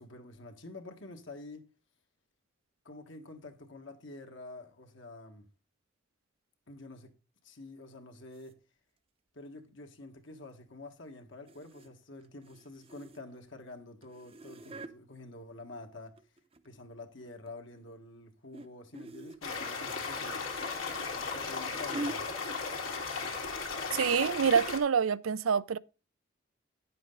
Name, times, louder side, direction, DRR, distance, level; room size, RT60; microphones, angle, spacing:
voice 1, 0.0-1.7 2.8-5.5 6.7-7.1 7.4-8.6 9.3-16.2 16.6-20.4 21.1-22.7, left 2 dB, 65° left, 1.7 m, -48 dB
sound 1, 8.3-8.5 11.5-11.9 12.2-13.4 14.0-14.9 15.9-16.8 17.2-17.5 18.5-18.7 18.9-19.5 20.9-22.2 23.0-23.2 23.5-23.6 24.1-24.2, right 1 dB, 30° right, 0.7 m, -44 dB
sound 2, 19.4-24.8, left 4 dB, 80° left, 2.4 m, -36 dB
voice 2, 23.9-25.8, right 6 dB, 90° right, 0.5 m, -27 dB
10.0 x 7.8 x 3.9 m
head